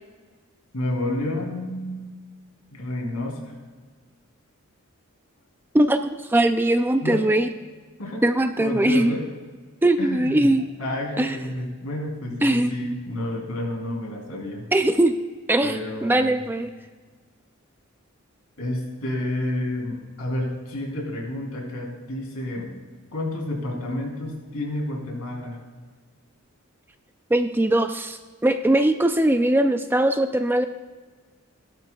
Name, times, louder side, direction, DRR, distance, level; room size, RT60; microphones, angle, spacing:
voice 1, 0.7-2.0 2.7-3.5 7.0-7.2 8.0-8.2 8.6-9.2 10.0-10.5 10.8-14.6 15.6-16.4 18.6-22.7 23.1-25.6, left 1 dB, 80° left, -1 dB, 3.5 m, -30 dB
voice 2, 5.7-7.5 8.2-9.1 9.8-10.6 11.2-11.4 12.4-12.7 14.7-15.1 15.5-16.7 27.3-30.6, right 1 dB, 10° right, 8 dB, 0.4 m, -20 dB
17.5 x 11.5 x 2.4 m, 1.4 s
head